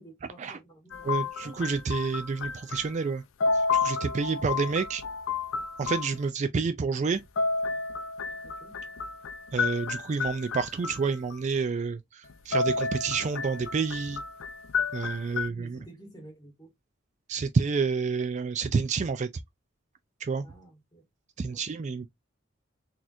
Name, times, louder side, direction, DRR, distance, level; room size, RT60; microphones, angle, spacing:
voice 1, 0.0-1.1 1.4-1.6 4.0-4.4 8.4-8.8 15.4-16.7 20.4-21.0 21.4-21.6, right 1 dB, 20° left, 1.9 m, -51 dB
sound 1, 0.9-3.1 3.4-6.1 7.1-11.4 12.3-15.5, left 4 dB, 80° left, 0.5 m, -31 dB
voice 2, 1.0-3.2 3.7-5.0 5.8-7.2 9.5-14.2 14.9-15.8 17.3-19.3 20.2-20.4 21.4-22.1, right 5 dB, 35° right, 0.3 m, -29 dB
4.0 x 2.9 x 2.5 m
head